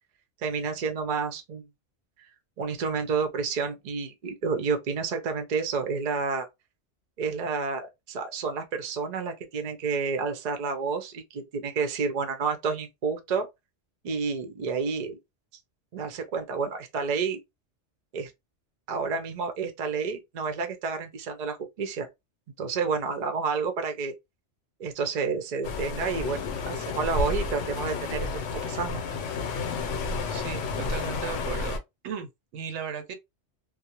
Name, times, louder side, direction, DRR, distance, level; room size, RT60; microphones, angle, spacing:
voice 1, 0.4-1.7 2.6-6.5 7.2-13.5 14.0-15.2 15.9-17.4 18.1-18.3 18.9-22.1 22.6-24.1 24.8-29.0, right 5 dB, 50° right, 0.5 m, -30 dB
sound 1, 25.6-31.8, left 4 dB, 85° left, 0.9 m, -31 dB
voice 2, 30.3-31.8 32.0-33.1, right 7 dB, 80° right, 0.9 m, -36 dB
2.3 x 2.0 x 2.7 m
omnidirectional pair, 1.2 m